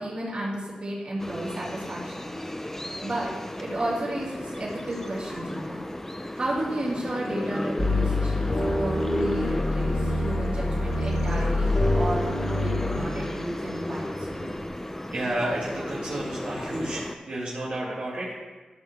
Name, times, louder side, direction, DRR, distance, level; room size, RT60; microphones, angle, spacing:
voice 1, 0.0-2.3 3.0-3.3 3.6-5.8 6.2-8.5 8.8-14.5, right 1 dB, 50° right, -6 dB, 3.1 m, -33 dB
sound 1, 1.2-17.2, left 1 dB, 15° left, 0.6 m, -34 dB
sound 2, 7.8-13.0, left 2 dB, 50° left, 2.0 m, -26 dB
voice 2, 15.1-18.4, right 1 dB, 75° right, -7 dB, 1.8 m, -31 dB
13.5 x 6.0 x 3.4 m, 1.3 s
cardioid pair, 60°, 2 cm